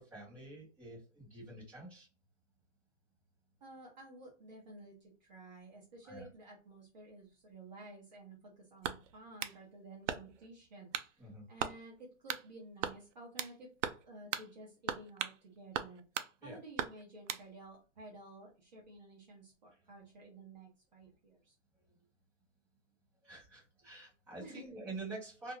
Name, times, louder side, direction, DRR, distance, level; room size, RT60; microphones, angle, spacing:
voice 1, 0.0-2.1 6.0-6.3 11.2-11.5 16.4-16.6 21.7-21.8 23.2-25.5, right 2 dB, 5° right, -10 dB, 1.1 m, -47 dB
voice 2, 3.6-13.7 14.0-16.0 16.4-21.5 24.4-24.6, right 2 dB, 35° right, -3 dB, 0.7 m, -53 dB
sound 1, 8.8-9.6 10.1-10.5 10.9-11.1 11.6-11.8 12.3-12.5 12.8-13.6 13.8-14.0 14.3-14.5 14.9-15.4 15.7-16.3 16.8-17.5, right 9 dB, 80° right, 0.5 m, -38 dB
2.4 x 2.2 x 3.0 m, 0.34 s
hypercardioid pair, 175°, 37 cm